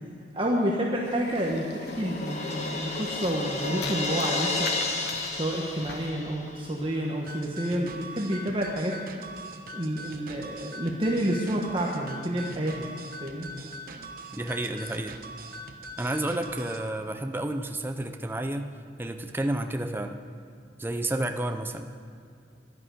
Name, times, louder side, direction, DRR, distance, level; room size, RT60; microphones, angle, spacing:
voice 1, 0.3-4.7 5.3-8.9 9.7-12.8 13.2-13.5, right 1 dB, 30° right, -2 dB, 1.2 m, -29 dB
sound 1, 1.1-6.1, left 4 dB, 65° left, 1.2 m, -42 dB
Crash cymbal, 1.1-6.7, left 3 dB, 40° left, 1.5 m, -32 dB
sound 2, 7.3-16.9, right 1 dB, 55° right, 1.1 m, -42 dB
voice 2, 14.3-15.2 16.0-20.2 20.8-21.9, right 1 dB, 10° right, 6 dB, 0.6 m, -31 dB
11.5 x 11.0 x 8.2 m, 2.3 s
head